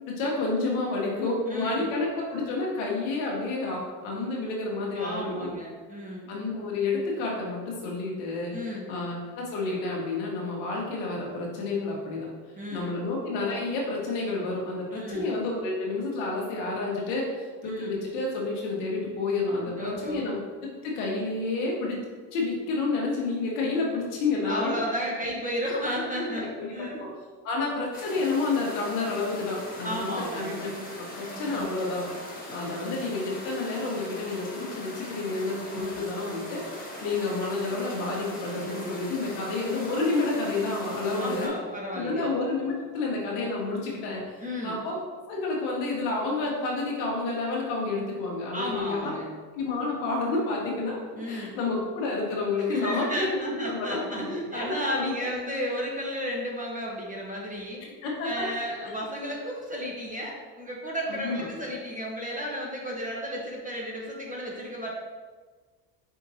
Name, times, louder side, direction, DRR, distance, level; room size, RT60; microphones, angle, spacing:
voice 1, 0.1-5.5 6.3-8.6 8.9-12.3 12.7-20.4 20.8-22.0 22.3-25.1 26.4-26.7 27.0-27.1 27.4-32.1 32.5-41.5 41.9-45.0 45.3-49.1 49.5-51.0 51.3-54.3 54.5-55.3 58.0-58.5 61.1-61.4, left 3 dB, 85° left, -2 dB, 1.5 m, -30 dB
voice 2, 1.5-1.9 5.0-6.3 8.5-8.9 12.6-12.9 14.9-15.4 17.6-18.0 19.8-20.3 24.4-27.0 29.8-30.6 31.3-31.6 35.7-36.1 41.2-42.3 44.4-44.8 48.5-49.3 51.1-51.6 52.7-57.8 58.2-64.9, equal, 15° right, -3 dB, 1.0 m, -33 dB
sound 1, 27.9-41.5, left 1 dB, 15° left, 1.4 m, -40 dB
5.1 x 3.7 x 2.8 m, 1.4 s
supercardioid pair, 95°, 49 cm